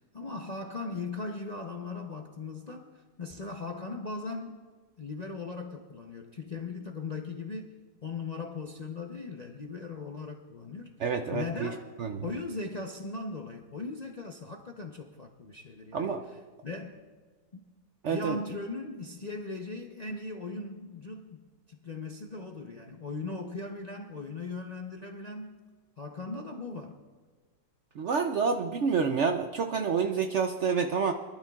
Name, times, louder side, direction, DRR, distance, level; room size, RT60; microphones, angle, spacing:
voice 1, 0.0-4.6 5.0-7.7 8.0-10.9 11.3-11.9 12.2-17.0 17.5-17.6 18.1-21.4 21.7-25.6 26.0-27.0, left 3 dB, 40° left, 2 dB, 0.5 m, -39 dB
voice 2, 11.0-11.7 12.0-12.2 15.9-16.2 18.0-18.4 28.0-31.1, right 5 dB, 65° right, 5 dB, 0.7 m, -28 dB
23.5 x 12.0 x 2.4 m, 1.4 s
omnidirectional pair, 1.7 m